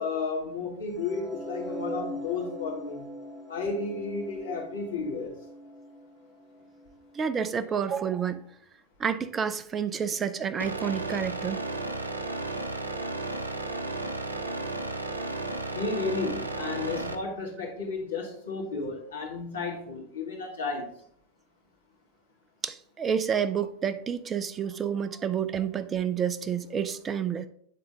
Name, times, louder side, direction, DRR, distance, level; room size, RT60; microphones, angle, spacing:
voice 1, 0.0-3.0 3.5-5.4 15.7-20.9, left 4 dB, 65° left, 2.0 m, -33 dB
sound 1, 1.0-7.2, equal, 5° right, 1.7 m, -41 dB
voice 2, 7.1-8.4 9.0-11.6 22.6-27.5, right 7 dB, 20° right, 0.4 m, -29 dB
sound 2, 10.6-17.1, right 2 dB, 80° right, 0.5 m, -33 dB
9.2 x 3.7 x 3.6 m
figure-of-eight pair, 90°, 0 cm